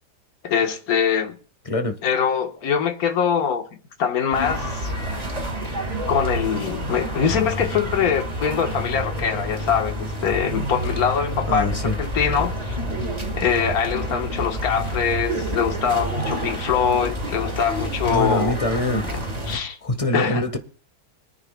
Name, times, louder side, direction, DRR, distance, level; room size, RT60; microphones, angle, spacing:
voice 1, 0.4-1.4 2.0-3.6 4.0-4.9 6.1-12.8 13.3-18.6 19.0-19.2 19.5-19.8 20.1-20.4, left 7 dB, 55° left, 1.7 m, -23 dB
sound 1, 4.3-19.6, equal, 20° right, 1.7 m, -28 dB
voice 2, 11.5-11.9 18.1-19.0 19.8-20.6, left 1 dB, 20° left, 1.1 m, -24 dB
25.5 x 9.7 x 2.3 m
omnidirectional pair, 2.1 m